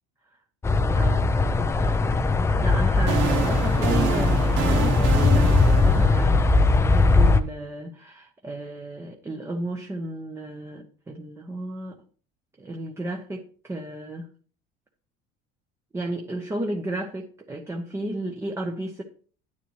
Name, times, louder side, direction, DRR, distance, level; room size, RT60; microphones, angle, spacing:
sound 1, 0.6-7.4, left 3 dB, 15° left, 0.5 m, -20 dB
voice 1, 1.0-1.3 2.6-11.9 12.6-14.3 15.9-19.0, right 1 dB, 15° right, 2 dB, 1.0 m, -33 dB
sound 2, 2.6-6.9, right 7 dB, 65° right, 1.2 m, -29 dB
10.0 x 9.9 x 3.2 m, 0.42 s
cardioid pair, 150°, 21 cm